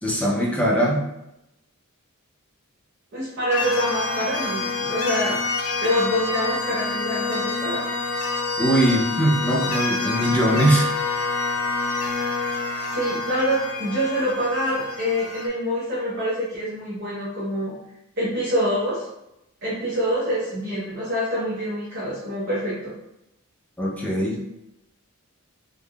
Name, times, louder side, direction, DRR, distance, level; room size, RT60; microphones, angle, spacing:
voice 1, 0.0-1.0 8.6-10.9 23.8-24.4, right 1 dB, 5° left, -3 dB, 0.4 m, -21 dB
voice 2, 3.1-5.4 5.8-7.9 12.9-17.7 18.2-19.1 19.6-22.9, equal, 50° right, -9 dB, 0.7 m, -26 dB
sound 1, 3.5-15.5, left 3 dB, 80° left, 0.5 m, -27 dB
3.3 x 2.1 x 2.3 m, 0.87 s
head